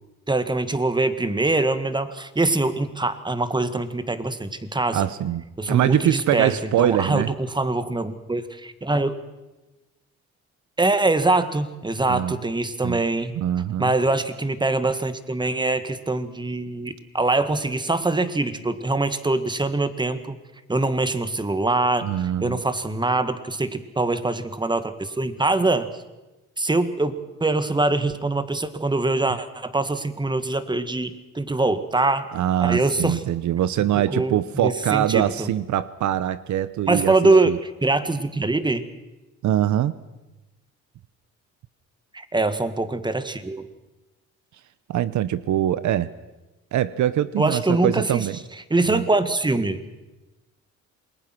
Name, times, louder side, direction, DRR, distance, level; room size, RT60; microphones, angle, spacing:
voice 1, 0.3-5.1 5.6-9.2 10.8-13.3 13.8-20.4 20.7-22.1 22.4-25.9 26.6-32.3 32.6-33.2 34.1-35.5 36.9-38.8 42.1-43.6 47.4-48.3 48.7-49.8, right 2 dB, 15° right, 11 dB, 1.9 m, -23 dB
voice 2, 4.9-7.3 12.1-12.3 12.8-13.0 13.3-13.9 22.0-22.6 32.3-37.2 37.4-37.6 39.4-39.9 44.9-46.1 46.7-48.4 48.9-49.0, right 11 dB, 70° right, 16 dB, 0.9 m, -23 dB
28.0 x 21.0 x 6.1 m, 1.1 s
cardioid pair, 90°, 30 cm